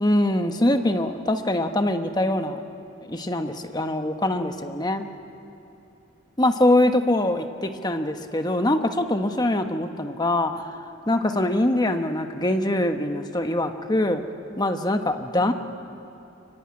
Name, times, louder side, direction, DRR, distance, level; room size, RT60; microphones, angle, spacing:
voice 1, 0.0-2.6 3.1-5.1 6.4-10.8 11.1-14.2 14.6-15.5, left 1 dB, 20° left, 6 dB, 1.2 m, -23 dB
24.5 x 23.5 x 9.7 m, 2.8 s
head